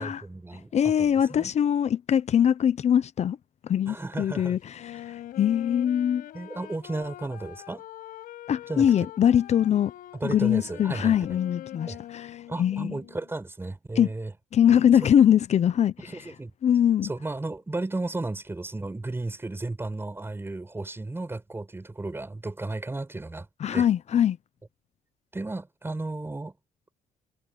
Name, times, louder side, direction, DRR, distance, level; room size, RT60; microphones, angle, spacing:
voice 1, 0.0-0.7 1.0-1.5 3.9-4.6 6.3-7.8 8.7-8.9 10.2-11.4 11.9-12.0 12.5-14.3 16.1-16.5 17.0-23.5 23.7-23.9 25.3-26.5, right 2 dB, 15° right, 7.7 m, -34 dB
voice 2, 0.7-3.4 3.6-6.2 8.5-9.9 10.2-13.0 14.0-14.1 14.5-15.9 16.6-17.1 23.6-24.4, left 9 dB, 50° left, 0.8 m, -22 dB
Wind instrument woodwind instrument, 4.7-13.3, left 13 dB, 85° left, 5.4 m, -43 dB
cardioid pair, 110°, 14 cm